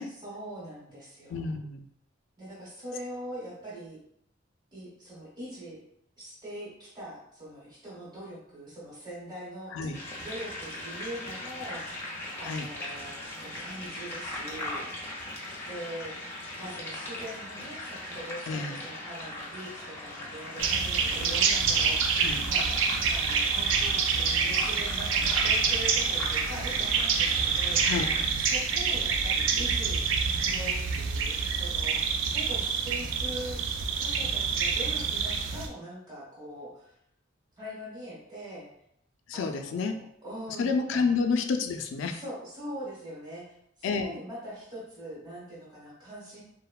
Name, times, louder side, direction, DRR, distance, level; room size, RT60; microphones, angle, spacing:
voice 1, 0.2-1.5 2.4-4.0 4.7-5.8 6.2-9.8 10.2-12.1 12.4-14.8 15.6-16.1 16.6-22.8 23.1-27.9 28.4-33.6 34.0-36.9 37.6-38.7 39.3-41.1 42.2-43.5 43.8-46.4, right 1 dB, 20° right, -7 dB, 1.0 m, -42 dB
voice 2, 1.3-1.9 9.7-10.0 12.4-12.7 18.5-18.8 22.2-22.5 27.8-28.1 39.3-40.0 40.6-42.2 43.8-44.2, left 4 dB, 75° left, 6 dB, 0.3 m, -29 dB
sound 1, 9.9-28.3, left 1 dB, 10° left, 0.5 m, -39 dB
sound 2, 20.6-35.7, right 5 dB, 75° right, 0.3 m, -27 dB
3.0 x 2.1 x 2.2 m, 0.74 s
head